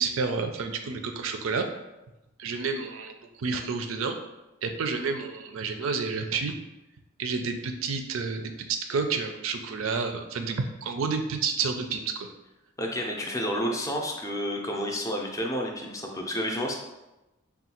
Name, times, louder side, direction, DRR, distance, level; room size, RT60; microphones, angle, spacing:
voice 1, 0.0-1.7 2.4-4.2 4.6-6.6 7.2-12.3, right 5 dB, 70° right, 6 dB, 0.4 m, -30 dB
voice 2, 12.8-16.8, equal, 15° left, 0 dB, 0.5 m, -30 dB
3.7 x 2.3 x 4.3 m, 0.99 s
head